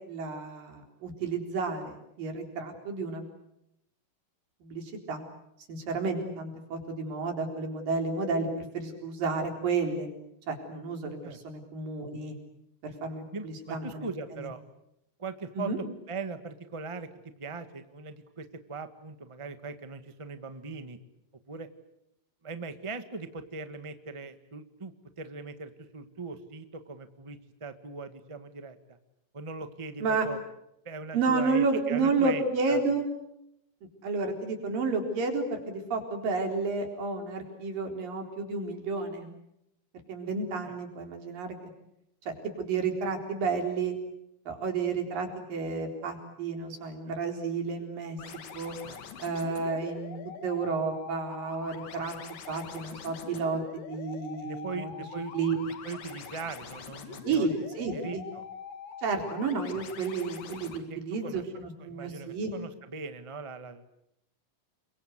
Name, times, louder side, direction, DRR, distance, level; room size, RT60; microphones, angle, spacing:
voice 1, 0.1-3.2 4.6-5.2 5.7-10.1 10.5-12.4 12.8-14.1 14.3-14.5 15.6-15.8 30.0-30.3 31.1-33.1 34.0-39.4 40.1-41.6 42.2-43.9 44.5-48.2 48.5-48.8 49.2-50.2 50.4-52.2 52.5-54.9 55.3-55.6 57.2-58.3 59.0-62.5, right 4 dB, 80° right, 4 dB, 5.7 m, -31 dB
voice 2, 13.3-14.6 15.2-17.1 17.4-21.0 21.5-21.7 22.4-28.8 29.3-30.4 30.8-32.8 40.6-40.8 48.8-49.0 54.4-55.3 55.8-57.7 57.9-58.4 60.9-61.5 61.8-63.9, right 4 dB, 30° right, 9 dB, 0.5 m, -40 dB
sound 1, 48.2-60.8, left 7 dB, 80° left, 4.0 m, -44 dB
29.0 x 23.5 x 8.2 m, 0.81 s
omnidirectional pair, 3.9 m